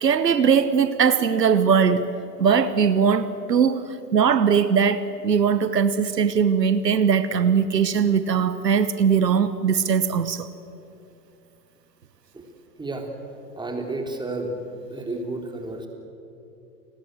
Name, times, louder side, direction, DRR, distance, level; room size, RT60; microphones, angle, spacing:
voice 1, 0.0-2.1 2.4-10.5, right 6 dB, 80° right, 13 dB, 1.3 m, -20 dB
voice 2, 12.8-13.1 13.5-14.6 14.9-15.9, right 2 dB, 10° right, 3 dB, 3.7 m, -31 dB
29.5 x 20.0 x 7.8 m, 2.8 s
figure-of-eight pair, 100°, 49 cm